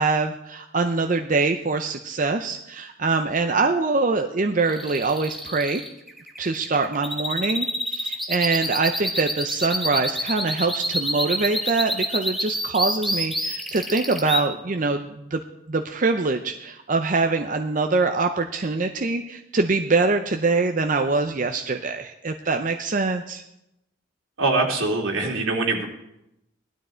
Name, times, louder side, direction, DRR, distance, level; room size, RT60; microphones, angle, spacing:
voice 1, 0.0-5.8 6.4-15.4 15.7-23.4, right 3 dB, 40° right, 5 dB, 0.6 m, -24 dB
sound 1, 4.7-14.4, equal, ahead, 1.2 m, -27 dB
voice 2, 24.4-25.8, right 3 dB, 80° right, 0 dB, 2.8 m, -23 dB
16.5 x 12.0 x 4.4 m, 0.88 s
head